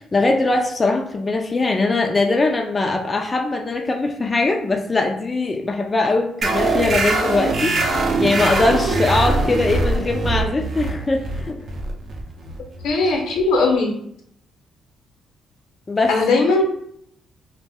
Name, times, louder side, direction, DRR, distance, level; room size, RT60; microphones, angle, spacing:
voice 1, 0.0-11.7 15.9-16.1, left 3 dB, 25° left, 2 dB, 0.3 m, -21 dB
sound 1, 6.4-13.5, right 3 dB, 50° right, 0.5 m, -22 dB
voice 2, 12.8-13.9 16.1-16.6, left 3 dB, 85° left, 1 dB, 0.7 m, -18 dB
2.5 x 2.1 x 3.4 m, 0.69 s
cardioid pair, 90°, 0 cm